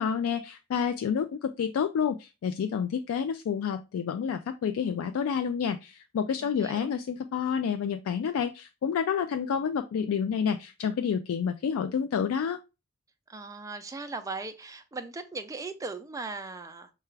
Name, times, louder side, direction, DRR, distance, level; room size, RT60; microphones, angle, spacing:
voice 1, 0.0-12.6, left 7 dB, 85° left, 0.3 m, -29 dB
voice 2, 6.4-6.9 13.3-16.9, right 3 dB, 15° right, 0.4 m, -38 dB
5.7 x 2.3 x 3.2 m
head